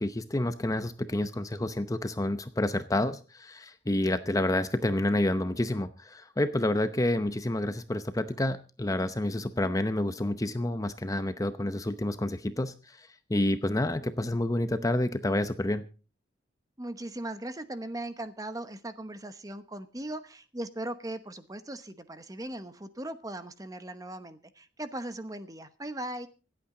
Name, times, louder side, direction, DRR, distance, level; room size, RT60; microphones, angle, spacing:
voice 1, 0.0-15.8, left 1 dB, 20° left, 10 dB, 0.7 m, -29 dB
voice 2, 16.8-26.3, right 1 dB, 20° right, 11 dB, 1.0 m, -39 dB
26.0 x 8.7 x 3.9 m, 0.35 s
head